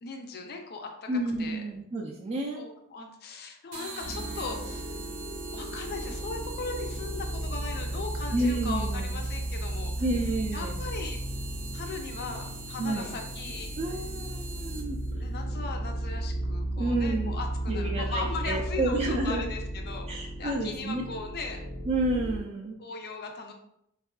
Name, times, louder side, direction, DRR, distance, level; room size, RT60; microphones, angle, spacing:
voice 1, 0.0-1.1 1.4-1.6 2.6-5.0 5.5-9.9 10.5-11.2 11.7-13.7 15.2-21.6 22.8-23.5, left 4 dB, 45° left, 4 dB, 0.4 m, -38 dB
voice 2, 1.1-2.6 8.3-9.2 10.0-10.8 12.8-13.1 13.8-15.0 16.7-17.4 17.7-19.4 20.1-21.0 21.8-22.7, right 2 dB, 30° right, -2 dB, 0.3 m, -30 dB
sound 1, 3.7-15.1, right 3 dB, 85° right, 0.6 m, -44 dB
sound 2, 4.0-22.4, right 1 dB, 85° left, 1.1 m, -34 dB
3.5 x 2.3 x 2.3 m, 0.75 s
head